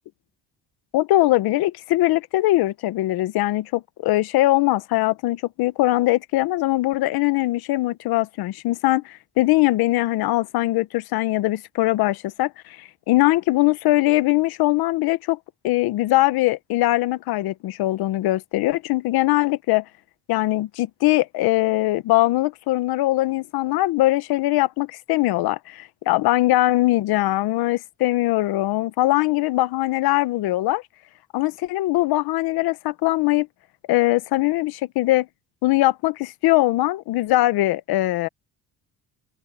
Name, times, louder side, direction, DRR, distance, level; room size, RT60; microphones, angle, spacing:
voice 1, 0.9-15.4 15.6-19.8 20.3-30.8 31.3-33.5 33.9-35.3 35.6-38.3, left 17 dB, 80° left, 1.1 m, -21 dB
cardioid pair, 90°, 37 cm